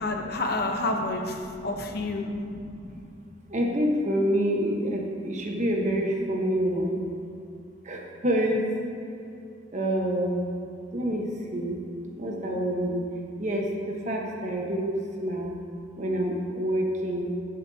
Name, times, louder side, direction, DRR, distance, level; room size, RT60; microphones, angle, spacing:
voice 1, 0.0-2.3, left 2 dB, 55° left, 3 dB, 0.9 m, -29 dB
voice 2, 1.4-1.8 2.2-3.1 3.5-7.0 7.8-8.7 9.7-10.4 10.9-11.8 12.2-13.1 13.4-15.6 16.0-17.3, equal, 40° right, 0 dB, 1.2 m, -28 dB
13.5 x 7.8 x 2.8 m, 2.6 s
head